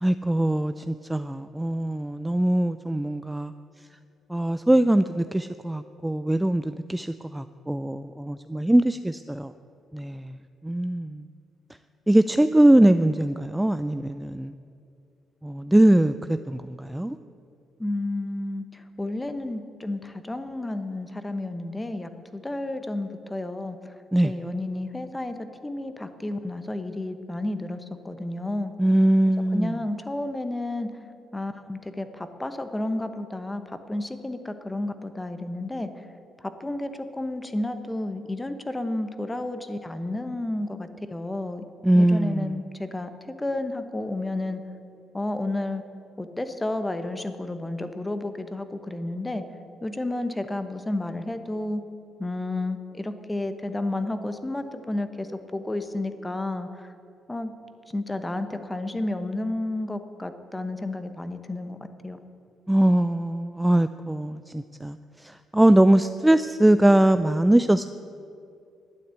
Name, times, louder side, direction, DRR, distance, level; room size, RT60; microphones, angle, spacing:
voice 1, 0.0-3.5 4.3-9.5 9.9-10.4 10.6-11.2 12.1-14.5 15.4-17.2 24.1-24.3 28.8-29.8 41.8-42.6 62.7-67.9, right 1 dB, 10° right, 11 dB, 0.3 m, -21 dB
voice 2, 17.8-23.8 24.2-28.7 29.5-30.9 31.3-35.9 36.4-41.6 41.9-44.6 45.1-45.8 46.2-49.4 49.8-51.8 52.2-56.9 57.3-57.5 57.9-61.8 62.0-62.2, left 2 dB, 15° left, 9 dB, 1.0 m, -31 dB
12.0 x 9.3 x 8.4 m, 2.5 s
cardioid pair, 90°, 0 cm